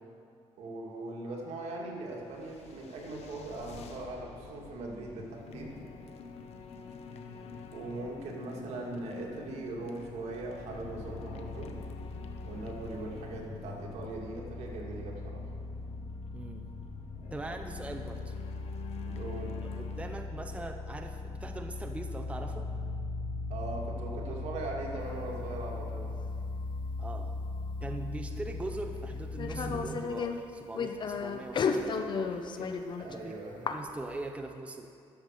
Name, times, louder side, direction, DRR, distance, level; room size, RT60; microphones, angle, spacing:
voice 1, 0.6-5.8 7.7-11.8 12.4-15.5 19.0-19.6 23.5-26.1 33.0-33.8, right 2 dB, 75° right, -1 dB, 2.1 m, -40 dB
sound 1, 2.0-20.1, left 6 dB, 70° left, 0.9 m, -47 dB
sound 2, 10.6-29.8, left 3 dB, 20° left, 2.8 m, -39 dB
voice 2, 16.3-16.7 17.3-18.3 19.6-22.7 27.0-27.4 27.8-32.8 33.1-33.3 33.7-34.9, right 2 dB, 10° right, 5 dB, 0.6 m, -41 dB
sound 3, 25.0-26.6 27.4-27.5 28.5-28.6 29.2-33.1 33.7-34.3, left 5 dB, 45° left, 0.7 m, -34 dB
11.5 x 7.1 x 6.5 m, 2.4 s
cardioid pair, 110°, 11 cm